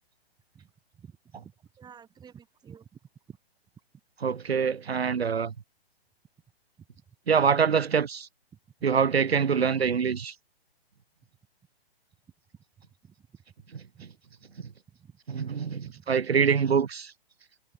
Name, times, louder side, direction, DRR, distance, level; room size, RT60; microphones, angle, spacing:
voice 1, 0.5-1.2 1.4-2.9 3.3-3.4 13.0-13.3 13.9-14.1 15.0-15.2 15.7-16.1, right 7 dB, 15° right, 6.0 m, -51 dB
voice 2, 4.2-5.5 7.3-8.3 8.8-10.3 15.3-17.1, right 6 dB, 75° right, 3.3 m, -25 dB
hypercardioid pair, 135°, 31 cm